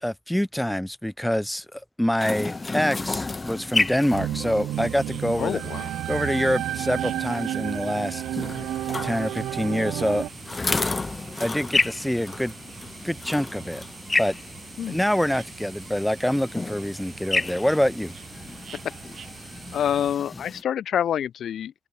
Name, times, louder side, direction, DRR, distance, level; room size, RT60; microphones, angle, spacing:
voice 1, 0.0-5.6 6.1-8.2 9.0-10.2 11.4-12.5 13.0-13.8 14.2-14.4 14.9-18.1, equal, 5° left, 0.7 m, -26 dB
sound 1, 2.2-20.6, left 3 dB, 20° left, 1.6 m, -32 dB
sound 2, 4.1-10.3, right 13 dB, 80° right, 0.8 m, -31 dB
sound 3, 4.7-20.2, right 8 dB, 60° right, 5.9 m, -45 dB
voice 2, 5.4-5.9 8.6-8.7 14.8-15.0 18.7-18.8 19.7-21.7, left 9 dB, 65° left, 0.5 m, -27 dB
open air
cardioid pair, 90°, 0 cm